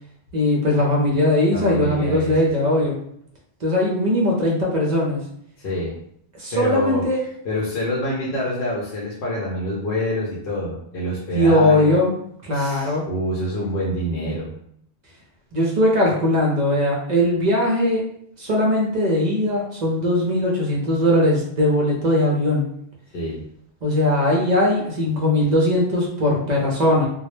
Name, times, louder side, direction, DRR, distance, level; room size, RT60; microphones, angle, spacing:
voice 1, 0.3-3.0 3.6-5.2 6.4-7.2 11.4-12.1 12.4-13.0 15.5-18.0 18.4-22.6 23.8-27.1, left 1 dB, 50° right, -2 dB, 0.6 m, -19 dB
voice 2, 1.5-2.7 5.6-6.0 6.5-7.0 7.4-11.9 12.5-14.5 23.1-23.4, left 1 dB, 65° left, -4 dB, 0.7 m, -26 dB
2.1 x 2.0 x 3.0 m, 0.69 s
omnidirectional pair, 1.1 m